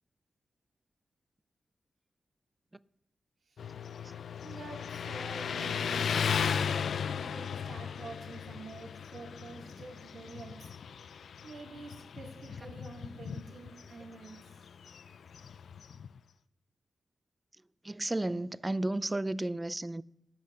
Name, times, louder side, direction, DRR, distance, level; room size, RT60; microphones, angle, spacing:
Motorcycle, 3.6-16.2, left 7 dB, 85° left, 0.3 m, -36 dB
voice 1, 4.4-6.6 7.1-10.7 11.4-14.7, right 3 dB, 65° right, 2.2 m, -48 dB
voice 2, 17.8-20.0, right 1 dB, 20° right, 0.3 m, -33 dB
10.0 x 8.1 x 6.6 m
cardioid pair, 75°, 0 cm